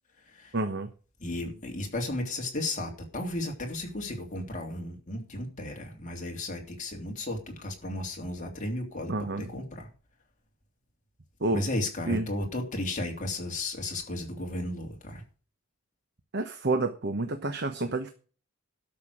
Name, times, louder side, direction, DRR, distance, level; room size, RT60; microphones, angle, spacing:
voice 1, 0.5-0.9 9.1-9.5 11.4-11.6 12.1-12.3 16.3-18.1, right 2 dB, 55° right, 8 dB, 1.1 m, -29 dB
voice 2, 1.2-9.9 11.5-15.2, left 1 dB, 40° left, 1 dB, 3.1 m, -34 dB
12.5 x 6.7 x 6.4 m, 0.38 s
head